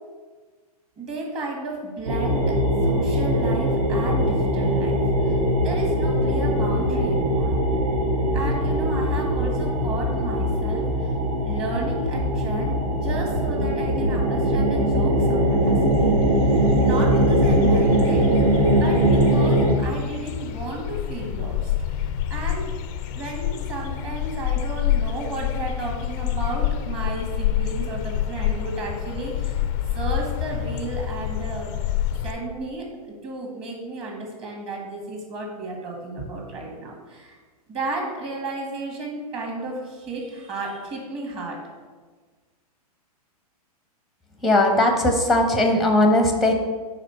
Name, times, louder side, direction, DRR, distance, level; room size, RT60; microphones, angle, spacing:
voice 1, 1.0-7.5 8.3-11.1 11.4-12.7 13.0-16.2 16.4-18.3 18.8-22.7 23.1-29.6 29.9-31.7 32.2-37.4 37.7-41.6, right 2 dB, 30° right, 0 dB, 1.7 m, -33 dB
sound 1, 2.1-19.7, equal, 60° right, 1.3 m, -21 dB
sound 2, 15.5-15.6 15.8-32.3, left 11 dB, 35° left, 0.4 m, -28 dB
voice 2, 44.4-46.5, left 1 dB, ahead, 4 dB, 0.7 m, -18 dB
4.9 x 4.2 x 5.6 m, 1.4 s
hypercardioid pair, 135°, 20 cm